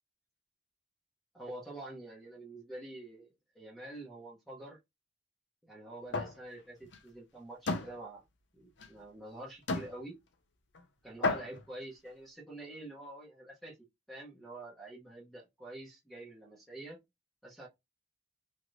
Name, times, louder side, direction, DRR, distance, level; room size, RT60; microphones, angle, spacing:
voice 1, 1.3-4.8 5.6-8.2 8.5-10.2 11.0-13.8 14.1-17.0 17.4-17.7, right 1 dB, ahead, 1.0 m, -47 dB
sound 1, 6.1-6.4 6.8-7.0 7.7-7.9 8.8-8.9 9.7-9.9 10.7-10.8 11.2-11.7, left 3 dB, 85° left, 0.7 m, -33 dB
3.2 x 2.9 x 2.6 m
head